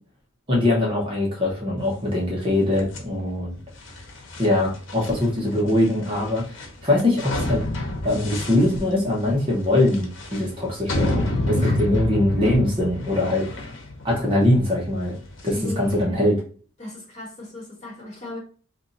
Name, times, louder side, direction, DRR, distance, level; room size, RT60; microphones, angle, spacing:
voice 1, 0.5-3.5 4.4-6.4 6.8-7.6 8.0-13.6 14.0-15.2 15.4-16.4, left 1 dB, 25° right, 1.0 m, -22 dB
sound 1, 2.8-16.0, left 1 dB, 75° left, 0.9 m, -30 dB
voice 2, 15.5-16.2 16.8-18.4, left 1 dB, 35° left, 1.4 m, -36 dB
2.8 x 2.5 x 3.9 m
head